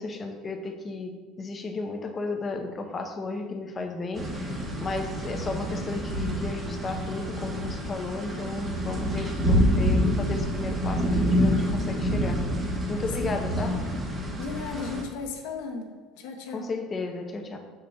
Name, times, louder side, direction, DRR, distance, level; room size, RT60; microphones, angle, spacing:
voice 1, 0.0-13.7 16.5-17.6, left 3 dB, 20° left, 4 dB, 0.6 m, -34 dB
sound 1, 4.1-15.0, equal, 20° right, 1.2 m, -27 dB
voice 2, 14.4-16.7, left 4 dB, 80° left, 3 dB, 0.8 m, -36 dB
6.7 x 6.5 x 2.2 m, 1.4 s
cardioid pair, 155°, 0 cm